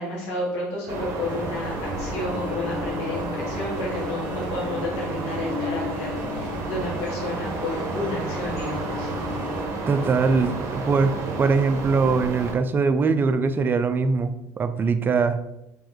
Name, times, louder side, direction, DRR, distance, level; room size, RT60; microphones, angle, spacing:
voice 1, 0.0-9.1, left 1 dB, 80° left, -4 dB, 1.2 m, -31 dB
sound 1, 0.9-12.5, right 3 dB, 50° right, 0.8 m, -31 dB
sound 2, 1.2-9.6, left 3 dB, 15° left, 1.1 m, -36 dB
voice 2, 9.9-15.4, right 4 dB, 30° right, 10 dB, 0.4 m, -22 dB
3.0 x 3.0 x 3.8 m, 0.91 s
hypercardioid pair, 75°, 7 cm